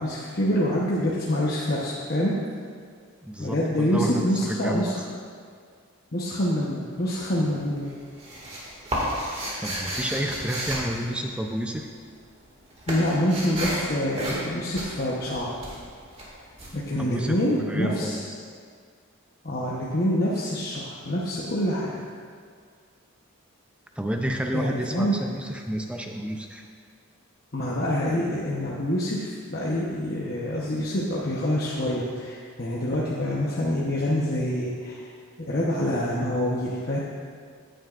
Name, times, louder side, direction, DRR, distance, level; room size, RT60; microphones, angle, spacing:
voice 1, 0.0-2.3 3.4-5.0 6.1-7.9 12.9-15.5 16.7-18.2 19.4-21.9 24.5-25.1 27.5-35.0 35.4-37.0, equal, 45° left, -6 dB, 1.0 m, -26 dB
voice 2, 3.2-5.0 9.6-11.9 17.0-18.4 24.0-26.6, equal, 5° right, 2 dB, 0.5 m, -30 dB
sound 1, 6.9-7.5 7.8-11.8 12.1-17.7, equal, 30° right, 2.0 m, -32 dB
15.5 x 9.1 x 2.5 m, 2.1 s
head